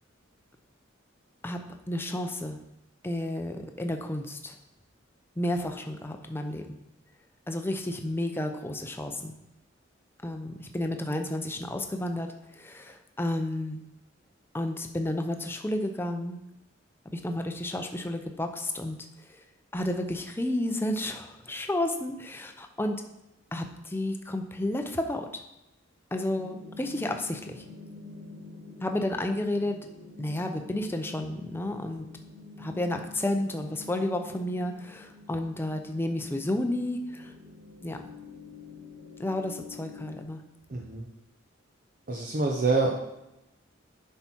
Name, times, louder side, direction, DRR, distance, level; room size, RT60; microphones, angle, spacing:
voice 1, 1.9-2.6 3.0-4.5 5.4-6.6 7.5-9.4 10.2-12.3 12.6-13.8 14.5-16.4 17.1-19.0 19.3-19.4 19.7-23.0 23.5-25.3 26.1-27.6 28.8-29.8 30.2-32.1 32.6-37.3 37.8-38.0 39.2-40.4, left 1 dB, 10° left, 5 dB, 0.6 m, -31 dB
sound 1, 26.3-40.2, left 4 dB, 65° right, 2.8 m, -47 dB
voice 2, 40.7-41.1 42.1-43.0, right 3 dB, 45° right, -1 dB, 0.8 m, -26 dB
7.9 x 5.7 x 4.5 m, 0.93 s
head